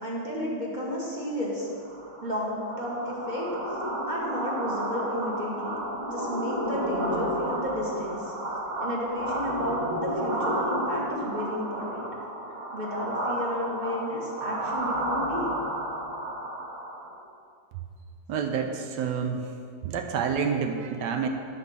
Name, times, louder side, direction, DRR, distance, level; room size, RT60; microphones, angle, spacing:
voice 1, 0.0-1.7 2.2-3.5 4.1-8.2 8.8-12.1 12.7-15.5, left 1 dB, 30° right, -4 dB, 1.0 m, -32 dB
sound 1, 1.8-17.1, right 1 dB, 50° right, 1.7 m, -32 dB
voice 2, 18.3-19.4 19.8-21.3, right 6 dB, 75° right, 5 dB, 1.1 m, -28 dB
8.4 x 4.2 x 6.6 m, 2.4 s
omnidirectional pair, 2.1 m